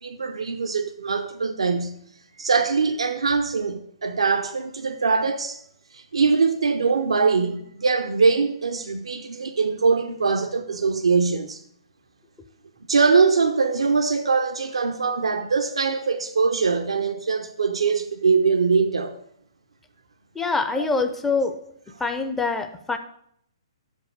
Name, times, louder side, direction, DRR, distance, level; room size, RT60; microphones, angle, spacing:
voice 1, 0.0-2.0 2.4-5.6 5.9-11.6 12.9-19.2, right 4 dB, 85° right, 0.6 m, -22 dB
voice 2, 20.4-21.6 22.0-23.0, left 4 dB, 10° left, 0.6 m, -24 dB
6.3 x 5.3 x 6.5 m
hypercardioid pair, 135°, 3 cm